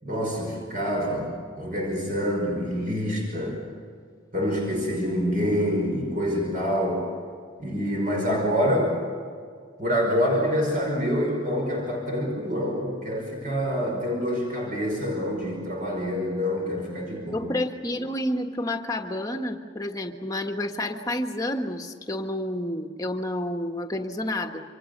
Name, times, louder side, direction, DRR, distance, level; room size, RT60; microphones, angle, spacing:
voice 1, 0.0-3.6 4.3-7.1 7.6-9.0 9.8-17.5, equal, 40° right, -1 dB, 5.5 m, -26 dB
voice 2, 17.3-24.6, left 1 dB, 15° left, 4 dB, 1.6 m, -30 dB
28.5 x 26.0 x 6.8 m, 2.1 s
head